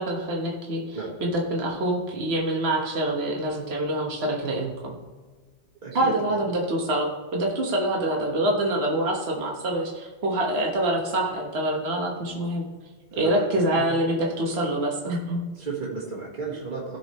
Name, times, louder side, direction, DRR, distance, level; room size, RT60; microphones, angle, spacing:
voice 1, 0.0-5.0 5.9-12.7 13.2-15.4, right 1 dB, 60° right, -1 dB, 1.6 m, -26 dB
voice 2, 5.8-6.4 13.1-13.8 15.6-17.0, right 4 dB, 40° right, -6 dB, 1.9 m, -33 dB
16.5 x 6.2 x 3.1 m, 1.4 s
omnidirectional pair, 1.2 m